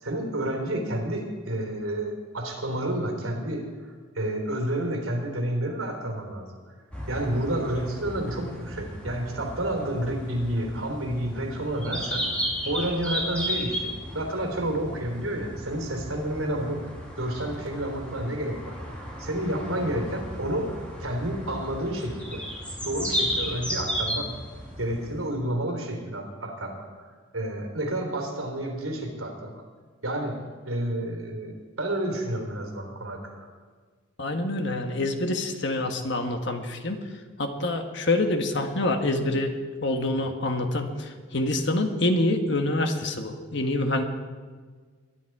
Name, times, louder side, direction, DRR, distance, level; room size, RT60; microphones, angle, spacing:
voice 1, 0.0-3.6 4.1-6.5 7.1-12.3 12.7-22.4 22.8-24.3 24.8-27.1 27.3-29.6 30.0-30.4 30.6-33.5, right 1 dB, 80° right, 1 dB, 3.7 m, -30 dB
sound 1, 6.9-25.3, equal, 5° left, 3.0 m, -34 dB
voice 2, 34.2-37.0 37.4-39.5 39.8-44.0, left 2 dB, 55° left, 5 dB, 1.5 m, -26 dB
22.0 x 10.5 x 4.8 m, 1.5 s
head